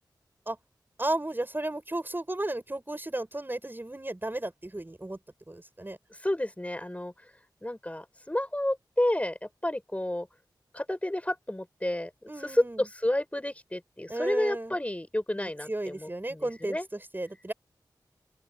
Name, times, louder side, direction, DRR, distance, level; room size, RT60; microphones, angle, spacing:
voice 1, 1.0-5.2 5.5-6.0 12.3-12.8 14.1-14.8 15.4-17.5, right 1 dB, 25° right, 7.2 m, -34 dB
voice 2, 6.2-7.3 7.6-10.3 10.7-12.1 12.4-16.9, left 1 dB, 15° left, 7.1 m, -30 dB
open air
cardioid pair, 45°, 8 cm